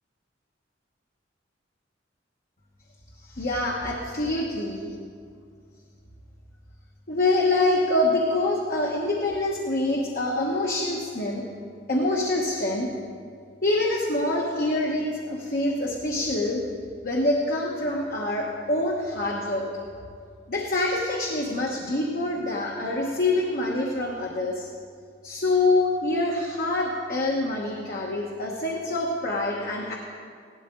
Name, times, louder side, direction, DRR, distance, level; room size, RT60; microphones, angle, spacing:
voice 1, 3.3-4.9 7.1-11.4 11.9-12.9 13.6-16.6 17.0-19.7 20.5-24.7 25.2-29.9, left 2 dB, 50° left, -2 dB, 1.1 m, -25 dB
16.0 x 12.5 x 3.8 m, 2.2 s
head